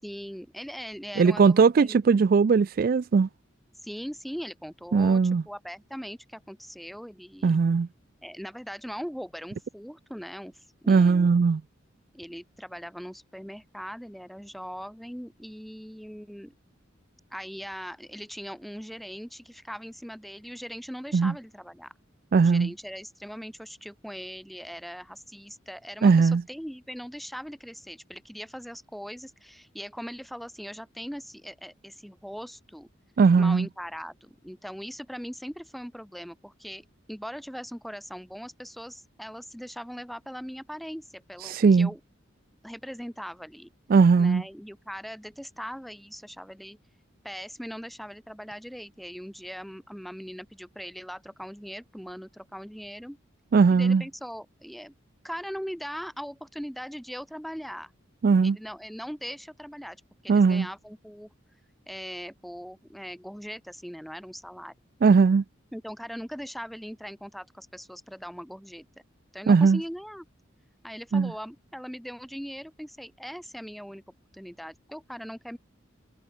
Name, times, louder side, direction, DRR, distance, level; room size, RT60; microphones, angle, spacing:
voice 1, 0.0-2.0 3.8-7.6 8.2-11.3 12.1-16.5 17.3-21.9 22.4-32.9 33.3-42.0 42.6-43.7 44.2-46.8 47.2-53.2 53.7-54.9 55.2-57.9 58.4-61.3 61.9-64.7 65.7-68.9 69.3-70.2 70.8-74.0 74.3-75.6, equal, ahead, 7.6 m, -40 dB
voice 2, 1.2-3.3 4.9-5.4 7.4-7.9 10.9-11.6 21.1-21.3 22.3-22.7 26.0-26.4 33.2-33.7 41.4-41.9 43.9-44.4 53.5-54.0 58.2-58.6 60.3-60.7 65.0-65.4 69.5-69.8 71.1-71.3, right 5 dB, 45° right, 0.3 m, -19 dB
head